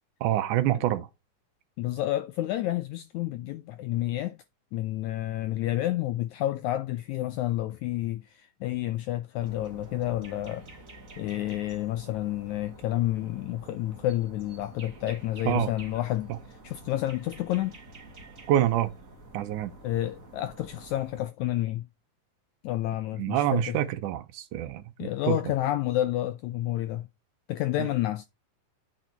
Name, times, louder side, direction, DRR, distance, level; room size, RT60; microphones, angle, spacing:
voice 1, 0.2-1.1 15.5-15.7 16.3-16.4 18.5-18.9 19.3-19.7 23.2-25.4, right 13 dB, 75° right, 2.1 m, -26 dB
voice 2, 1.8-4.4 4.7-10.7 11.2-17.8 19.8-21.9 22.6-23.8 25.0-27.1 27.5-28.3, left 14 dB, 80° left, 1.7 m, -30 dB
sound 1, 9.4-21.2, right 2 dB, 35° right, 1.3 m, -49 dB
8.8 x 4.9 x 4.5 m
omnidirectional pair, 3.9 m